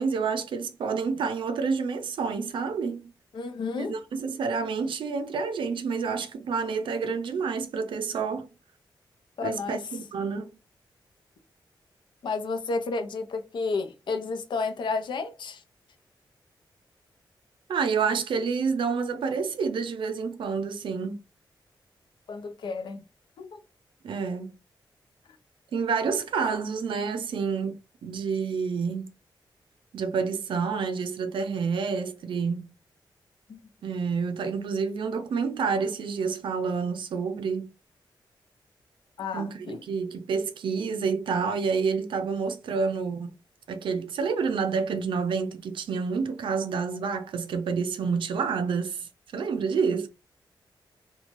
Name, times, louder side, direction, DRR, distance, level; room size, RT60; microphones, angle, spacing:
voice 1, 0.0-3.1 3.8-8.5 9.4-10.5 17.7-21.2 24.0-24.5 25.7-29.1 29.9-32.7 33.8-37.7 39.3-43.3 43.7-50.1, right 5 dB, 90° right, 0.4 m, -28 dB
voice 2, 3.3-4.0 9.4-9.8 12.2-15.6 22.3-23.0 23.4-23.6 33.5-33.6 39.2-39.8, left 4 dB, 70° left, 0.5 m, -31 dB
2.9 x 2.2 x 2.5 m
wide cardioid pair, 145°, 8 cm